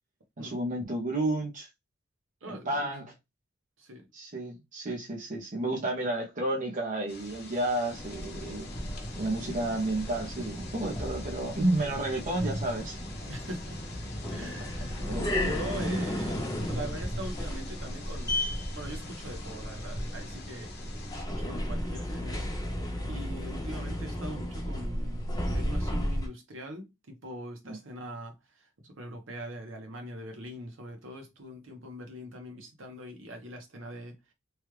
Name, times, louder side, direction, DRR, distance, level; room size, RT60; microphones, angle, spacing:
voice 1, 0.4-1.7 2.5-3.1 4.1-8.7 9.2-13.0 15.0-15.5 15.8-16.0 27.6-27.8, right 1 dB, 40° right, 0.8 m, -31 dB
voice 2, 2.4-2.9 3.8-4.1 13.3-14.0 14.3-15.0 15.3-18.4 18.7-20.7 21.3-22.5 23.1-34.3, equal, 65° right, 1.0 m, -42 dB
sound 1, 7.1-21.2, left 3 dB, 55° left, 0.9 m, -47 dB
sound 2, 7.9-26.3, equal, 20° left, 0.9 m, -34 dB
3.2 x 2.3 x 3.1 m
head